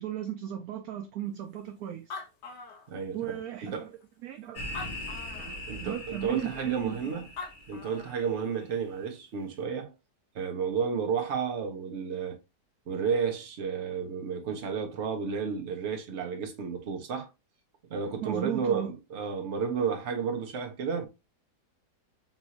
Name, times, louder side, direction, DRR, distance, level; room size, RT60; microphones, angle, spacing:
voice 1, 0.0-2.2 3.1-3.9 4.2-4.6 5.3-7.0 18.2-18.9, right 11 dB, 70° right, 1.0 m, -36 dB
Animal, 1.7-1.8 1.9-3.4 4.0-4.1 4.6-5.6 7.1-7.2 7.4-8.3, left 4 dB, 80° left, 1.6 m, -42 dB
voice 2, 2.9-3.9 5.7-7.3 7.7-9.9 10.3-12.4 12.9-17.3 17.9-21.1, right 6 dB, 50° right, 1.1 m, -32 dB
sound 1, 4.6-8.4, left 1 dB, 50° left, 1.3 m, -41 dB
5.5 x 2.6 x 2.9 m
omnidirectional pair, 1.8 m